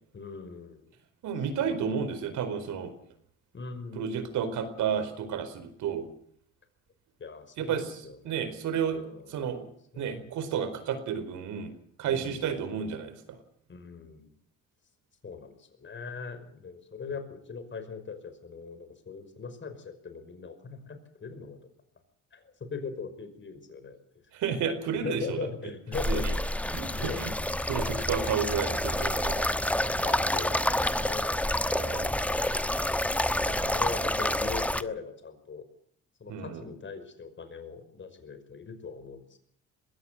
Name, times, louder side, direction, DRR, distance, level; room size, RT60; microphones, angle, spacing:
voice 1, 0.1-0.9 1.6-2.1 3.5-4.2 7.2-7.8 8.0-8.3 8.8-9.4 9.9-10.3 12.1-12.8 13.7-14.3 15.2-21.6 22.3-24.0 25.0-26.3 26.9-27.3 29.8-31.4 32.3-32.8 33.1-35.6 36.2-39.4, left 4 dB, 40° left, 9 dB, 5.5 m, -41 dB
voice 2, 1.2-2.9 3.9-6.1 7.6-7.9 8.2-9.0 9.3-9.7 10.0-11.7 12.0-13.4 24.3-25.5 26.1-26.3 26.7-27.3 27.7-29.5 31.7-32.3 33.4-33.8 36.3-36.7, right 7 dB, 80° right, 10 dB, 4.6 m, -32 dB
sound 1, 25.9-34.8, left 1 dB, 5° left, 1.1 m, -28 dB
21.5 x 16.5 x 7.9 m, 0.65 s
cardioid pair, 85°, 30 cm